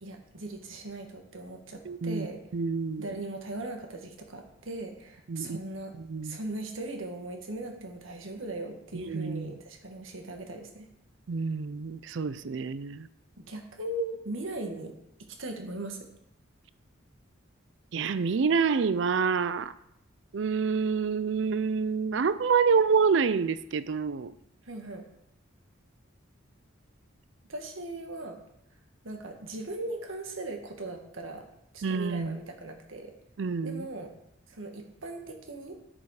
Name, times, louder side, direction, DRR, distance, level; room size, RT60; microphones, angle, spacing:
voice 1, 0.0-2.4 3.0-5.9 6.2-10.9 13.4-14.9 15.4-16.1 24.6-25.0 27.5-28.4 29.0-31.5 31.7-33.1 33.6-34.1 34.5-35.7, right 2 dB, 80° right, 4 dB, 1.5 m, -38 dB
voice 2, 1.9-2.3 2.5-3.1 5.3-5.6 6.0-6.4 9.0-9.5 11.3-13.1 17.9-19.7 20.3-24.3 31.8-32.4 33.4-33.9, right 5 dB, 60° right, 15 dB, 0.4 m, -27 dB
8.7 x 6.9 x 4.8 m, 0.78 s
head